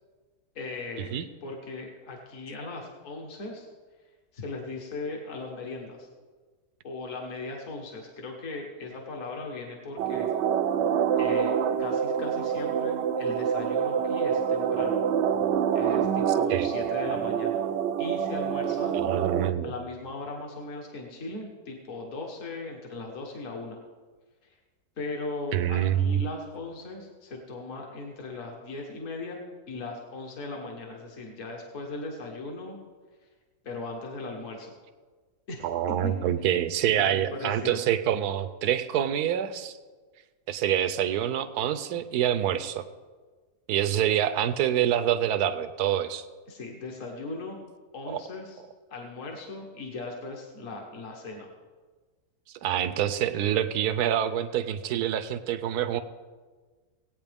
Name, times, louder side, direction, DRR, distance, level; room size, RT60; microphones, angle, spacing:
voice 1, 0.6-1.2 1.4-3.7 4.3-6.1 6.8-10.3 11.2-11.5 11.8-15.0 15.7-17.6 18.0-19.0 19.6-23.8 25.0-29.4 29.7-32.8 33.6-34.7 35.5-35.7 36.0-36.1 36.9-37.8 46.5-47.6 47.9-48.6 48.9-51.5, left 3 dB, 55° left, 0 dB, 1.7 m, -38 dB
sound 1, 10.0-19.5, right 8 dB, 65° right, 0.7 m, -26 dB
voice 2, 18.9-19.7 25.5-26.2 35.6-39.8 40.5-42.9 43.7-46.2 48.1-48.2 52.6-56.0, right 10 dB, 85° right, 11 dB, 1.2 m, -26 dB
19.0 x 8.7 x 3.5 m, 1.4 s
omnidirectional pair, 1.6 m